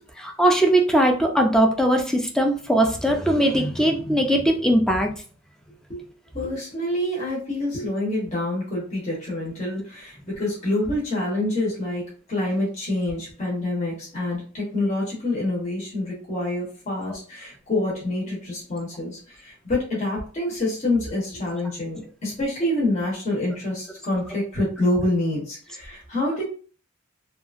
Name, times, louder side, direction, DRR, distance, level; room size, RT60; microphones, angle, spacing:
voice 1, 0.2-5.1, right 1 dB, 5° left, 2 dB, 0.3 m, -20 dB
voice 2, 6.3-12.0 12.3-26.4, left 1 dB, 35° left, -5 dB, 0.9 m, -27 dB
2.8 x 2.4 x 2.4 m, 0.41 s
head